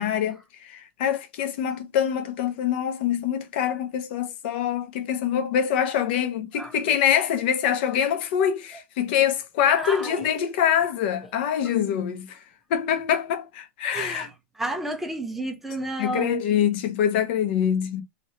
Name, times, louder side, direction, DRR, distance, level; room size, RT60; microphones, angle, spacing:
voice 1, 0.0-12.4 12.7-14.3 16.0-18.0, left 9 dB, 50° left, 0.8 m, -25 dB
voice 2, 9.8-10.3 13.9-14.3 14.6-16.4, right 2 dB, 5° right, 0.5 m, -31 dB
3.1 x 3.0 x 2.8 m
supercardioid pair, 175°, 7 cm